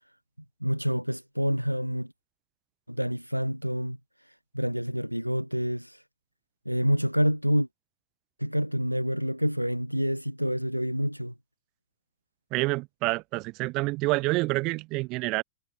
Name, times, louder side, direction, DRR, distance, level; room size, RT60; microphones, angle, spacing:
voice 1, 0.6-2.1 2.9-4.0 4.5-6.0 6.7-7.7 8.4-11.3, equal, 90° right, 0.4 m, -27 dB
voice 2, 12.5-15.4, right 23 dB, 40° right, 0.6 m, -28 dB
figure-of-eight pair, 90°, 0 cm